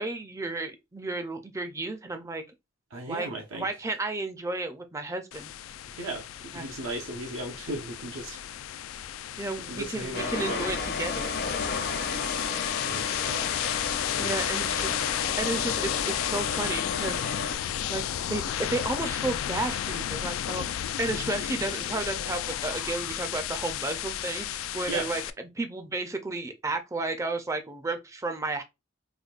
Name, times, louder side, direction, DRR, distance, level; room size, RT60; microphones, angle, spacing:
voice 1, 0.0-2.4 3.1-5.5 6.5-6.7 9.4-11.3 14.2-17.3 17.9-28.6, right 2 dB, 15° right, 0.4 m, -33 dB
voice 2, 2.9-3.7 5.9-6.2 6.5-8.4 9.7-10.7 12.2-12.3 12.8-13.6 14.2-14.5 24.9-25.0, right 2 dB, 85° right, 0.7 m, -36 dB
sound 1, 5.3-25.3, left 11 dB, 85° left, 0.3 m, -33 dB
sound 2, 10.1-17.6, left 5 dB, 50° left, 0.6 m, -33 dB
5.0 x 2.2 x 2.4 m
head